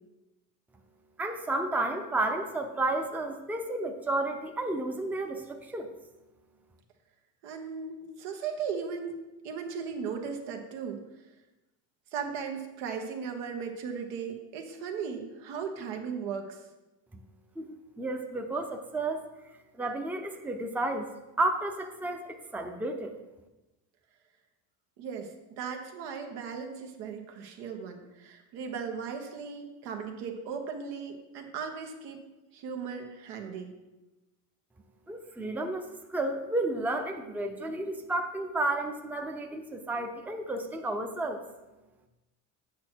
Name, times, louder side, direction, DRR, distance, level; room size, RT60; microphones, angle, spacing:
voice 1, 1.2-5.9 17.6-19.3 19.8-21.1 21.4-23.1 35.1-41.4, right 2 dB, 5° right, 4 dB, 0.6 m, -32 dB
voice 2, 7.4-9.2 9.4-11.0 12.1-16.6 25.0-32.3 32.5-33.8, right 6 dB, 80° right, 3 dB, 1.4 m, -37 dB
8.3 x 6.0 x 4.5 m, 1.0 s
cardioid pair, 115°, 41 cm